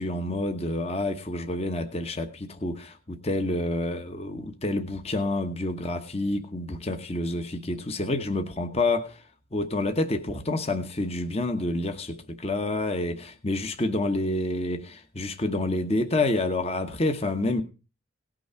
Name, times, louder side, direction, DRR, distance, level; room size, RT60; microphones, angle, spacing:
voice 1, 0.0-9.2 9.5-17.6, left 2 dB, 30° left, 1.1 m, -28 dB
18.0 x 6.2 x 4.4 m
head